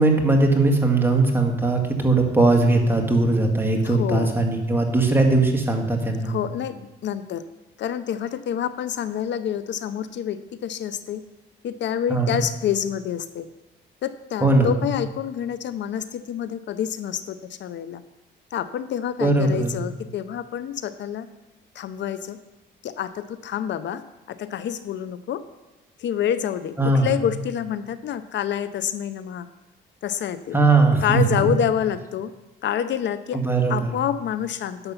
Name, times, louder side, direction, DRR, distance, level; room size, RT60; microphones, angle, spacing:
voice 1, 0.0-6.3 12.1-12.4 14.4-14.7 19.2-19.8 26.8-27.1 30.5-31.5 33.3-33.9, right 2 dB, 10° right, 1 dB, 2.0 m, -19 dB
voice 2, 3.8-4.3 6.3-7.4 7.8-11.2 11.6-13.5 14.0-18.0 18.5-21.3 21.8-22.4 22.8-24.0 24.3-25.4 26.0-26.7 27.0-29.5 30.0-30.6 31.0-32.3 32.6-33.4 33.7-34.9, left 9 dB, 65° left, 13 dB, 0.5 m, -27 dB
11.0 x 6.8 x 5.6 m, 1.1 s
cardioid pair, 90°, 20 cm